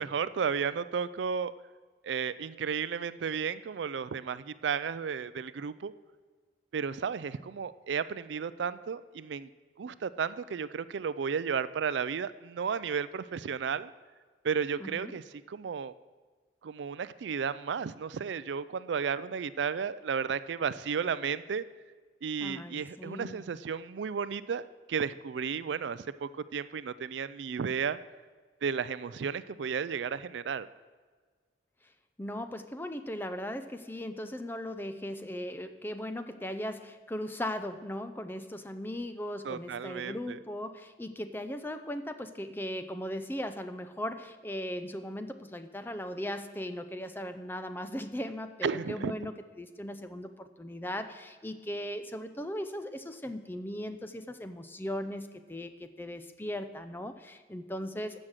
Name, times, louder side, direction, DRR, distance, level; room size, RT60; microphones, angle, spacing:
voice 1, 0.0-1.5 2.0-5.9 6.7-9.5 9.8-13.9 14.4-15.9 16.6-21.6 22.2-28.0 28.6-30.7 39.4-40.4 48.6-49.1, right 6 dB, 80° right, 15 dB, 0.4 m, -33 dB
voice 2, 14.8-15.2 22.4-23.4 32.2-49.3 49.6-58.2, left 1 dB, 10° left, 9 dB, 0.6 m, -38 dB
13.5 x 6.4 x 7.5 m, 1.5 s
head